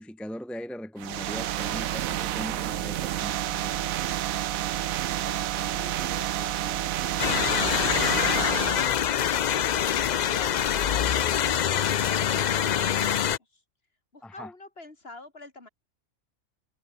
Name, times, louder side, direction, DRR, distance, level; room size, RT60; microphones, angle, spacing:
voice 1, 0.0-4.1 14.2-14.5, equal, ahead, 1.3 m, -40 dB
sound 1, 1.0-8.9, right 12 dB, 90° right, 1.1 m, -29 dB
voice 2, 5.2-9.8 10.3-11.8 12.1-13.6 14.1-15.7, left 2 dB, 45° left, 3.4 m, -47 dB
sound 2, 7.2-13.4, left 9 dB, 80° left, 0.4 m, -25 dB
omnidirectional pair, 1.4 m